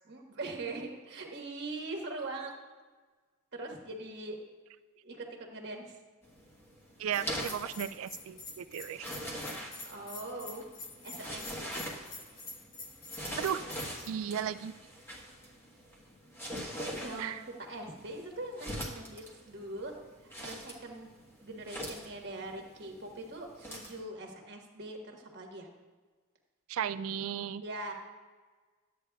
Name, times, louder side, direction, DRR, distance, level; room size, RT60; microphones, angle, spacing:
voice 1, 0.1-2.5 3.5-4.4 5.0-5.2 5.5-5.9 9.8-10.6 11.0-11.7 16.8-19.9 20.2-21.1 21.4-25.7 27.6-27.9, right 2 dB, 55° right, 1 dB, 1.4 m, -42 dB
sound 1, 6.2-24.0, equal, 10° left, 1.2 m, -43 dB
voice 2, 7.0-9.1 13.4-13.6 14.1-14.7 17.2-17.4 26.7-27.6, right 9 dB, 80° right, 13 dB, 0.3 m, -35 dB
Bell, 7.1-14.1, left 3 dB, 40° left, 1.2 m, -46 dB
12.5 x 8.3 x 2.3 m, 1.4 s
head